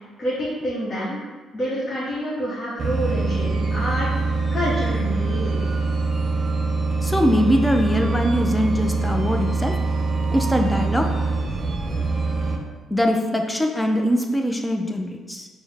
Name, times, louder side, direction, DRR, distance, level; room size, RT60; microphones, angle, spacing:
voice 1, 0.2-1.2 1.5-4.1 4.5-5.6, equal, 45° left, -9 dB, 1.0 m, -27 dB
sound 1, 2.8-12.6, right 3 dB, 45° right, 0.5 m, -24 dB
voice 2, 7.0-9.8 10.3-11.2 12.9-15.5, equal, 10° left, 3 dB, 0.4 m, -22 dB
4.4 x 2.1 x 3.4 m, 1.3 s
cardioid pair, 90°, 0 cm